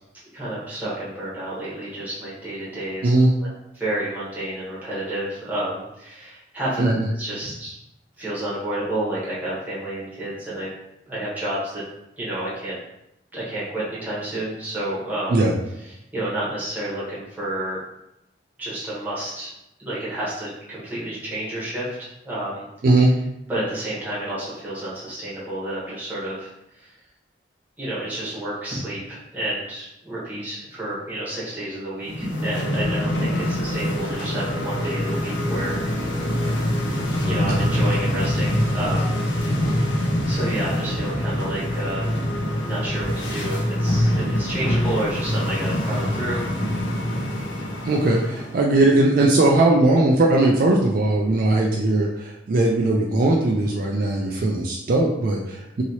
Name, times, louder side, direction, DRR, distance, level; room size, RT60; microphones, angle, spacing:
voice 1, 0.3-3.1 3.4-7.7 8.2-10.7 11.1-11.8 12.1-12.7 13.3-15.5 15.8-17.8 18.6-19.5 19.8-22.7 23.5-27.0 27.8-35.8 37.2-39.2 40.3-42.1 42.6-46.5, right 1 dB, 10° right, -9 dB, 1.1 m, -30 dB
sound 1, 32.0-48.7, left 1 dB, 90° left, 0.7 m, -24 dB
voice 2, 47.9-55.8, right 2 dB, 50° right, -1 dB, 0.3 m, -19 dB
2.9 x 2.7 x 2.9 m, 0.85 s
head